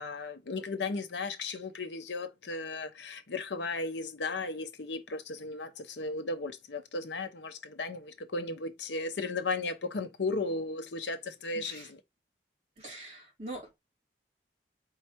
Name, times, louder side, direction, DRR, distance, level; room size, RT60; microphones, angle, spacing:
voice 1, 0.0-12.0, left 3 dB, 85° left, 0.7 m, -35 dB
voice 2, 11.5-11.9 12.8-13.8, right 2 dB, 35° right, 2.8 m, -43 dB
4.6 x 3.3 x 2.9 m
head